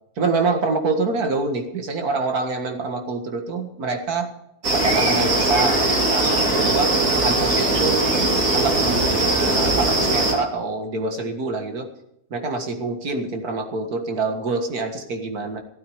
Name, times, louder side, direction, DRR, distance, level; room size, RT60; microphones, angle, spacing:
voice 1, 0.2-4.3 4.7-11.9 12.3-15.6, right 3 dB, 85° right, 5 dB, 2.2 m, -26 dB
sound 1, 4.6-10.3, right 2 dB, 65° right, 3.1 m, -20 dB
14.5 x 12.5 x 4.9 m, 0.81 s
omnidirectional pair, 1.6 m